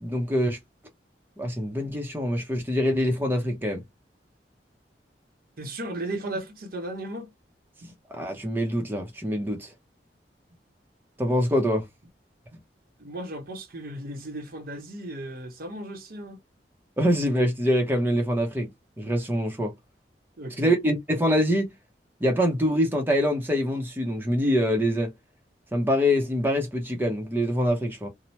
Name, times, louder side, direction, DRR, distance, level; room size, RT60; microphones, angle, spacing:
voice 1, 0.0-0.6 1.4-3.8 8.1-9.7 11.2-11.8 17.0-18.7 19.0-19.7 20.6-21.7 22.2-25.1 25.7-28.1, equal, 10° right, 0.7 m, -24 dB
voice 2, 5.6-7.3 7.8-7.9 12.5-12.6 13.0-16.4 20.4-20.8, right 1 dB, 55° right, 0.8 m, -36 dB
2.8 x 2.1 x 3.0 m
head